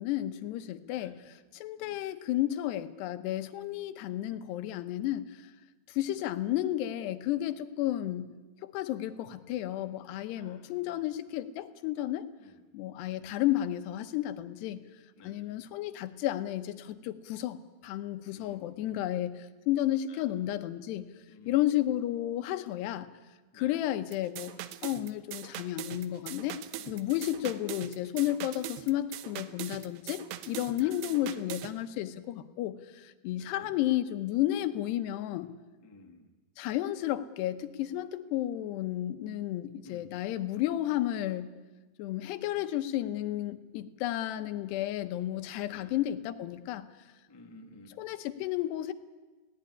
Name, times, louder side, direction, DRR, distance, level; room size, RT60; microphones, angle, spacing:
voice 1, 0.0-5.5 5.9-8.3 8.6-12.3 12.7-14.8 15.2-21.1 21.5-23.1 23.5-24.5 24.8-26.6 26.9-35.5 36.6-41.5 42.0-46.9 48.0-48.9, left 13 dB, 90° left, 10 dB, 3.0 m, -32 dB
voice 2, 10.3-11.1 12.4-12.6 13.1-13.2 15.2-15.6 18.3-19.0 20.1-20.3 21.3-21.6 23.5-23.8 26.8-27.0 30.8-31.0 33.3-33.7 35.8-36.3 39.8-40.2 45.7-45.9 47.3-48.0, left 2 dB, 15° left, 2 dB, 0.8 m, -54 dB
sound 1, 24.1-31.7, right 13 dB, 90° right, 3.1 m, -42 dB
19.5 x 17.5 x 9.7 m, 1.2 s
omnidirectional pair, 4.7 m